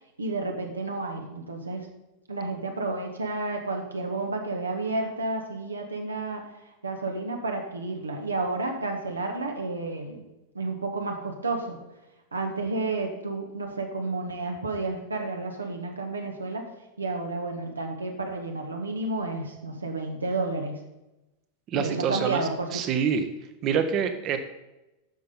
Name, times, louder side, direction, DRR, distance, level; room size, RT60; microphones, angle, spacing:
voice 1, 0.2-1.9 2.3-6.4 6.8-10.2 10.5-11.8 12.3-16.7 17.0-20.8 21.7-22.8, right 3 dB, 75° right, 3 dB, 1.6 m, -31 dB
voice 2, 21.7-23.3 23.6-24.4, right 7 dB, 35° right, 9 dB, 1.1 m, -26 dB
9.2 x 7.0 x 5.5 m, 0.97 s
figure-of-eight pair, 90°, 0 cm